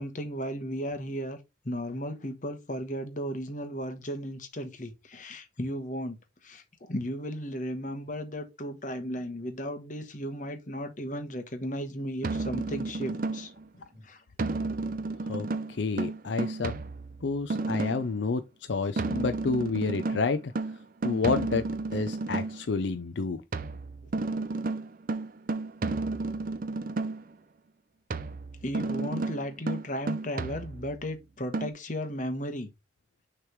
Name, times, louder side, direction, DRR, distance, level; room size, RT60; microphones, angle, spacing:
voice 1, 0.0-1.4 1.6-6.2 6.4-14.2 28.6-32.7, equal, 45° left, 1.2 m, -35 dB
sound 1, 12.2-13.6 14.4-18.2 19.0-22.6 23.5-27.3 28.1-31.1 31.5-31.7, right 3 dB, 50° right, 0.5 m, -32 dB
voice 2, 15.8-16.7 17.2-18.4 18.7-20.5 21.0-21.7 21.9-23.4, left 4 dB, 75° left, 0.5 m, -29 dB
6.5 x 3.4 x 4.5 m
head